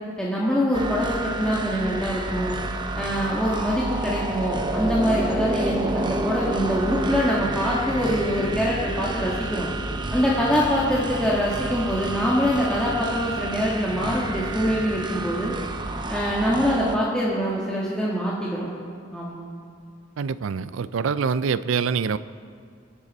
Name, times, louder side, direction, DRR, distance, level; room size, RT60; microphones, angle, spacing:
voice 1, 0.2-2.6 2.9-9.7 10.1-15.5 16.1-18.7 19.1-19.4, equal, 5° left, -7 dB, 1.5 m, -24 dB
sound 1, 0.7-17.0, right 2 dB, 25° right, 0.6 m, -29 dB
voice 2, 20.2-22.2, right 6 dB, 85° right, 15 dB, 0.4 m, -25 dB
24.0 x 8.0 x 4.1 m, 2.2 s
head